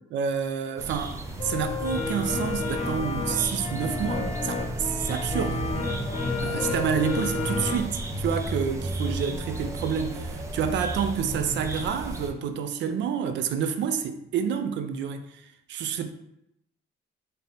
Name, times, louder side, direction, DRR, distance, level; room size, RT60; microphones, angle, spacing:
voice 1, 0.1-5.7 6.4-15.4 15.7-16.1, right 7 dB, 70° right, 0.4 m, -29 dB
sound 1, 0.8-12.3, right 1 dB, 15° right, 0.5 m, -36 dB
sound 2, 1.4-7.8, left 3 dB, 35° left, 0.6 m, -31 dB
sound 3, 4.0-12.1, equal, 50° right, 1.0 m, -36 dB
3.4 x 2.8 x 3.8 m
cardioid pair, 120°, 19 cm